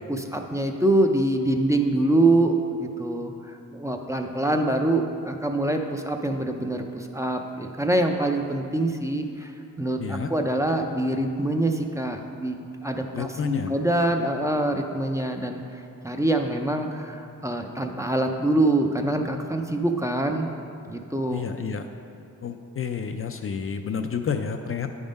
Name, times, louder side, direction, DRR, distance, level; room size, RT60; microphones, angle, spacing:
voice 1, 0.1-9.5 9.8-12.6 12.8-15.6 16.0-20.5 20.9-21.4, right 1 dB, 10° right, 3 dB, 0.5 m, -25 dB
voice 2, 10.0-10.3 13.1-13.7 21.3-21.9 22.4-24.9, left 6 dB, 45° left, 6 dB, 0.4 m, -30 dB
9.3 x 3.6 x 5.2 m, 2.6 s
cardioid pair, 75°, 33 cm